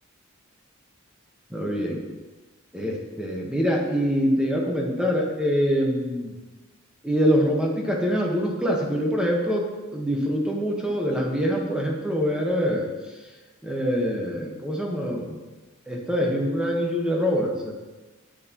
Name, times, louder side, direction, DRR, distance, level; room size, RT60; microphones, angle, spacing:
voice 1, 1.5-2.0 2.7-6.3 7.0-9.6 9.9-12.8 13.6-15.4 15.9-17.7, equal, 5° right, -1 dB, 1.3 m, -24 dB
10.5 x 8.5 x 3.0 m, 1.2 s
head